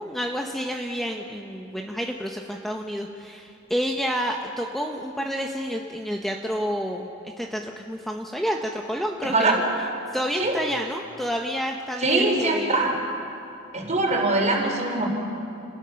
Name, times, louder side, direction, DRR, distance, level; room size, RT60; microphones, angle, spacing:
voice 1, 0.0-7.1 7.4-9.6 10.1-12.9, equal, ahead, 1 dB, 0.9 m, -29 dB
voice 2, 9.3-9.6 10.4-10.6 12.0-12.9 13.7-15.1, right 2 dB, 35° right, 1 dB, 4.2 m, -22 dB
30.0 x 20.5 x 5.8 m, 2.7 s
head